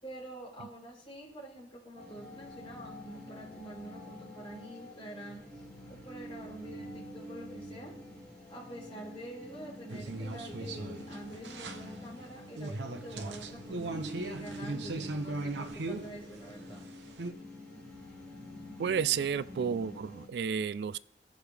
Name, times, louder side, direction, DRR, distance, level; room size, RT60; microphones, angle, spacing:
voice 1, 0.0-5.4 5.9-7.9 8.5-16.8, right 1 dB, 30° left, -5 dB, 4.8 m, -46 dB
sound 1, 2.0-20.3, equal, 5° left, 2.6 m, -47 dB
sound 2, 9.9-17.3, right 2 dB, 80° right, 0.8 m, -38 dB
voice 2, 18.8-21.0, right 7 dB, 65° right, 16 dB, 0.3 m, -31 dB
16.5 x 6.3 x 3.4 m, 0.75 s
head